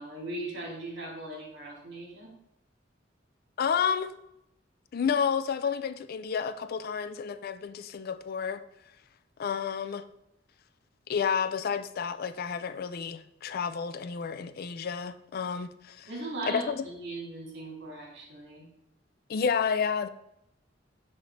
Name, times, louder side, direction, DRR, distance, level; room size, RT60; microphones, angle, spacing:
voice 1, 0.0-2.3 16.0-18.7, right 2 dB, 65° right, 2.6 m, -39 dB
voice 2, 3.6-4.1 4.9-8.6 9.4-10.1 11.1-16.1 16.5-16.8 19.3-20.1, left 6 dB, 55° left, 0.4 m, -30 dB
6.2 x 5.5 x 3.3 m
head